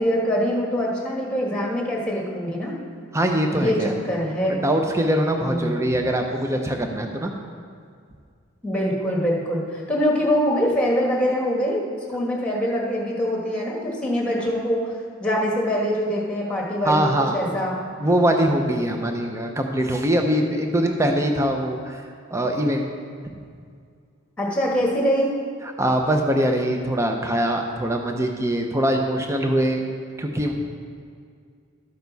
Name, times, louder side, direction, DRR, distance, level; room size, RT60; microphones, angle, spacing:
voice 1, 0.0-2.7 3.5-4.6 5.4-5.7 8.6-11.8 12.1-14.9 15.2-17.8 24.4-25.3, equal, 5° left, -2 dB, 1.4 m, -24 dB
voice 2, 3.1-4.0 4.5-7.3 16.8-17.5 18.0-22.0 22.3-22.9 25.8-29.8 30.2-30.5, right 1 dB, 15° right, 3 dB, 0.6 m, -22 dB
12.5 x 6.8 x 4.0 m, 2.2 s
head